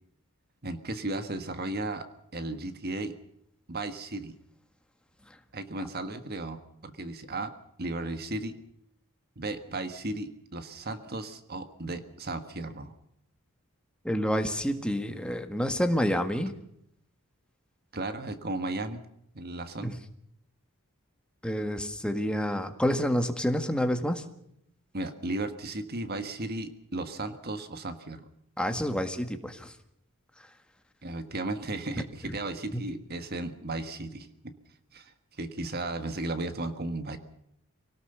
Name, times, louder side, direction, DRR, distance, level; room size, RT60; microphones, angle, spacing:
voice 1, 0.6-2.1 2.3-3.1 3.7-4.4 5.5-7.5 7.8-8.6 9.3-12.9 17.9-19.0 19.3-20.0 24.9-28.3 31.0-34.5 34.9-37.2, right 2 dB, 45° right, 9 dB, 1.5 m, -35 dB
voice 2, 14.1-16.5 19.8-19.9 21.4-24.2 28.6-29.7, equal, 5° left, 6 dB, 1.7 m, -28 dB
24.5 x 18.5 x 6.9 m, 0.74 s
head